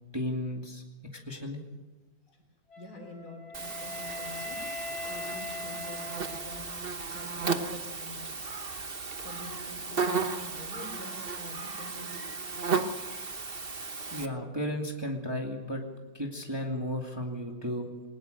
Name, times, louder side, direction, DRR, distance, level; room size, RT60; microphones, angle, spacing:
voice 1, 0.1-0.8 1.1-1.6 14.1-15.8 16.1-17.9, equal, 15° right, 1 dB, 2.2 m, -34 dB
Wind instrument woodwind instrument, 2.7-6.9, left 3 dB, 90° left, 3.3 m, -41 dB
voice 2, 2.8-4.6 5.0-6.7 7.1-8.5 9.2-12.3, left 2 dB, 50° left, 4 dB, 4.1 m, -46 dB
Buzz, 3.5-14.3, right 4 dB, 35° right, 1.0 m, -35 dB
21.0 x 19.5 x 6.6 m, 1.1 s
omnidirectional pair, 2.1 m